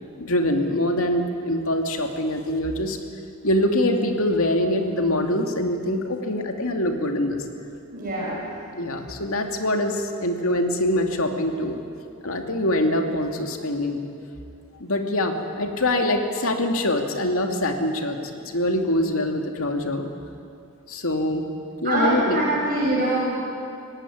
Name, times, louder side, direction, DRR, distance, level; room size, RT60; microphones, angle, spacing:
voice 1, 0.2-3.0 3.4-7.4 8.8-11.8 12.2-14.0 14.7-18.2 18.4-20.1 20.9-21.5 21.8-22.4, left 1 dB, 75° left, 3 dB, 2.5 m, -24 dB
voice 2, 7.9-8.4 21.8-23.2, right 1 dB, 40° right, -6 dB, 6.1 m, -23 dB
24.5 x 18.5 x 10.0 m, 2.5 s
head